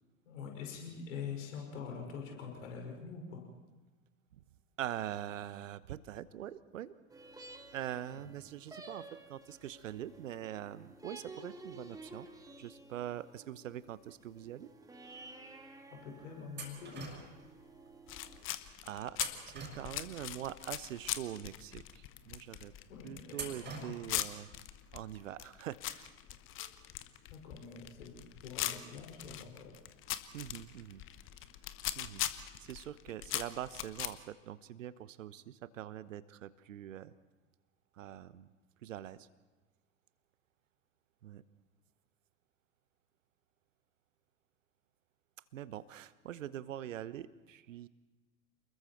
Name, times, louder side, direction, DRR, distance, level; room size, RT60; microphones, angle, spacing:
voice 1, 0.3-3.4 16.0-17.1 22.9-23.4 23.6-23.9 26.6-26.7 27.3-29.7, left 6 dB, 60° left, 1 dB, 5.8 m, -45 dB
voice 2, 4.8-6.9 7.7-12.3 12.6-14.7 18.8-19.2 19.5-22.7 23.0-24.5 24.9-26.1 30.3-31.0 31.9-32.2 32.6-37.1 37.9-38.5 38.8-39.3 41.2-41.4 45.5-47.9, right 11 dB, 60° right, 17 dB, 1.0 m, -43 dB
sound 1, 7.1-18.4, right 2 dB, 10° right, 2.1 m, -53 dB
sound 2, 16.6-17.5 19.1-20.3 23.3-24.2, right 4 dB, 25° right, 5.4 m, -44 dB
sound 3, 18.1-34.1, left 13 dB, 30° left, 1.0 m, -41 dB
29.0 x 21.0 x 4.5 m, 1.2 s
figure-of-eight pair, 90°, 43 cm